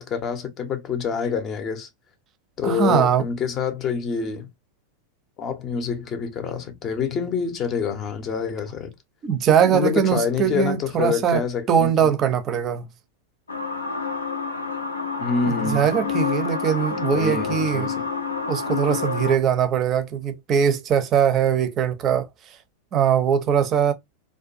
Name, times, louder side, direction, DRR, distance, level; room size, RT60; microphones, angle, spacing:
voice 1, 0.0-1.9 2.6-4.5 5.4-8.9 9.6-12.1 15.2-15.9 17.1-18.0, left 6 dB, 30° left, 0.6 m, -27 dB
voice 2, 2.6-3.2 9.2-11.4 11.7-12.9 15.5-17.9 18.5-22.3 22.9-23.9, right 8 dB, 30° right, 0.5 m, -21 dB
sound 1, 13.5-19.4, left 5 dB, 80° left, 0.5 m, -28 dB
2.5 x 2.2 x 2.4 m
figure-of-eight pair, 90°, 0 cm